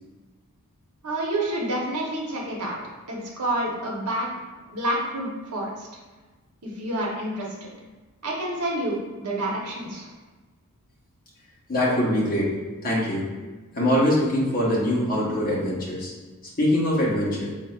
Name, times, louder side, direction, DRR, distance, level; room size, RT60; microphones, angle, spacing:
voice 1, 1.0-2.8 3.1-4.3 4.6-5.9 6.6-7.5 8.2-10.1, right 1 dB, 85° right, -2 dB, 1.0 m, -28 dB
voice 2, 11.7-12.5 12.8-13.3 13.7-16.1 16.6-17.5, left 1 dB, 40° left, -5 dB, 1.1 m, -23 dB
4.1 x 3.7 x 2.4 m, 1.3 s
head